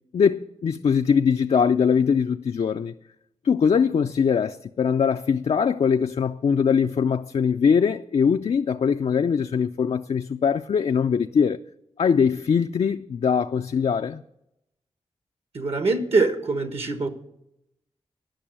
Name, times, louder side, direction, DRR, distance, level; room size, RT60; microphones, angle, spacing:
voice 1, 0.1-2.9 3.4-11.6 12.0-14.2, left 6 dB, 60° left, 0.4 m, -22 dB
voice 2, 15.5-17.1, right 3 dB, 60° right, 1.2 m, -23 dB
10.0 x 6.1 x 8.8 m
cardioid pair, 45°, 11 cm